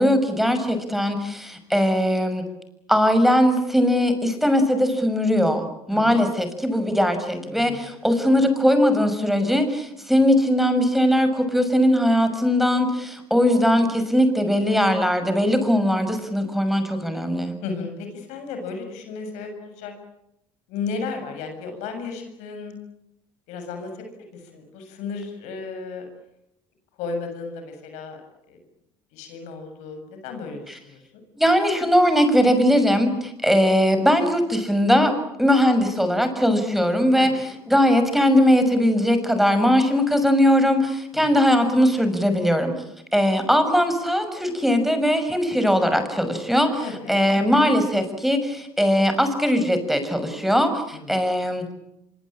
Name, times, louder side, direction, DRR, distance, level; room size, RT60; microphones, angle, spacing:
voice 1, 0.0-2.4 2.9-17.5 31.4-35.1 35.4-37.3 37.7-42.7 43.1-46.8 47.1-51.7, equal, ahead, 8 dB, 6.3 m, -20 dB
voice 2, 5.9-6.2 7.4-7.9 17.6-19.9 20.7-22.7 23.5-26.1 27.0-28.2 28.5-28.6 29.1-31.0 37.2-37.5 41.1-41.3 46.8-47.2 50.9-51.2, left 4 dB, 75° left, 6 dB, 7.2 m, -34 dB
26.0 x 24.0 x 8.7 m, 0.82 s
hypercardioid pair, 65°, 12 cm